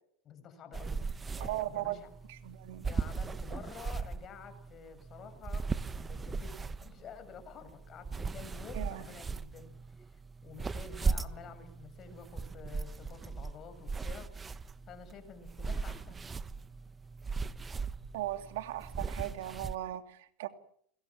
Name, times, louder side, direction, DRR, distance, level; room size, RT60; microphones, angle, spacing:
voice 1, 0.2-1.1 1.4-2.1 2.8-5.6 5.9-9.7 10.1-14.3 14.6-16.4, left 6 dB, 35° left, 9 dB, 7.1 m, -50 dB
sound 1, 0.7-19.8, right 4 dB, 20° right, 1.2 m, -38 dB
voice 2, 1.4-2.0 2.3-2.9 8.7-9.0 18.1-20.5, right 15 dB, 75° right, 8 dB, 2.8 m, -37 dB
29.5 x 22.0 x 7.5 m, 0.65 s
supercardioid pair, 110°, 0 cm